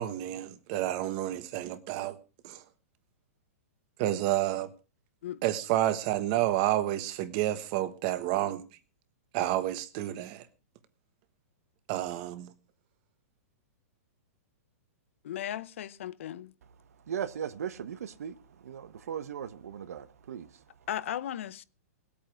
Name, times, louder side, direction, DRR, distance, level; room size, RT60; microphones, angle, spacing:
voice 1, 0.0-2.2 2.4-2.6 4.0-4.7 5.4-8.6 9.3-10.5 11.9-12.5, right 14 dB, 30° right, 1.2 m, -30 dB
voice 2, 15.2-16.5 20.9-21.6, left 11 dB, 55° left, 0.7 m, -36 dB
voice 3, 16.6-20.9, right 8 dB, 75° right, 1.3 m, -39 dB
19.5 x 8.6 x 4.7 m
hypercardioid pair, 170°, 8 cm